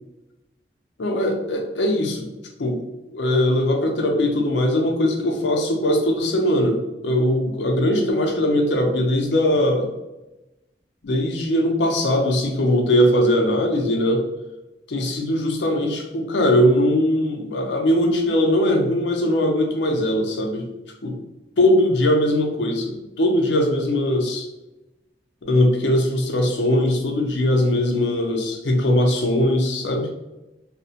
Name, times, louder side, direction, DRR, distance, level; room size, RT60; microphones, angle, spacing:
voice 1, 1.0-2.3 2.6-2.8 3.1-9.9 11.0-14.2 14.9-20.7 21.0-21.1 21.6-24.5 25.4-30.1, left 1 dB, 85° left, 2 dB, 0.6 m, -20 dB
2.9 x 2.1 x 2.7 m, 1.0 s
head